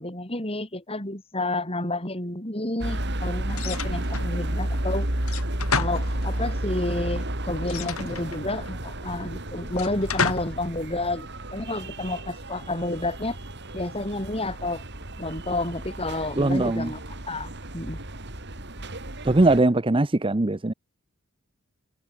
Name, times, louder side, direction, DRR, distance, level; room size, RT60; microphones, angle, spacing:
voice 1, 0.0-5.1 5.7-13.4 13.7-14.8 15.2-17.0 17.3-18.0, left 2 dB, 25° left, 6.7 m, -30 dB
sound 1, 2.8-19.6, right 1 dB, 55° right, 4.3 m, -32 dB
sound 2, 3.5-4.3 5.2-6.6 7.6-8.7 9.7-10.6, left 5 dB, 90° left, 4.1 m, -31 dB
voice 2, 16.4-16.9 19.2-20.7, right 2 dB, 25° right, 0.8 m, -21 dB
head